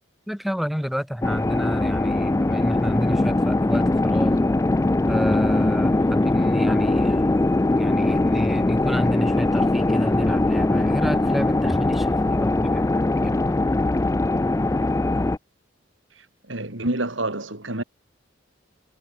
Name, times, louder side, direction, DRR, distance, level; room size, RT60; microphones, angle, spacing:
voice 1, 0.3-4.4 5.1-7.3 7.8-13.4, equal, ahead, 2.3 m, -30 dB
sound 1, 1.2-15.4, left 2 dB, 15° left, 0.4 m, -21 dB
voice 2, 16.5-17.8, right 2 dB, 80° right, 4.2 m, -27 dB
head